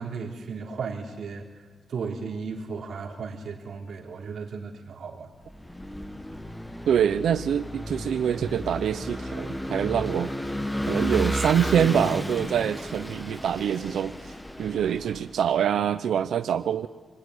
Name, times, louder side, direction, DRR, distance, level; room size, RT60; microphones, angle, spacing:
voice 1, 0.0-5.3, right 5 dB, 55° right, -1 dB, 3.9 m, -35 dB
Vehicle / Engine, 5.5-15.3, equal, 5° left, 1.2 m, -33 dB
voice 2, 6.8-10.3 10.9-14.3 14.6-16.9, right 9 dB, 75° right, 10 dB, 0.8 m, -25 dB
27.0 x 22.0 x 9.9 m, 1.4 s
wide cardioid pair, 155°, 0 cm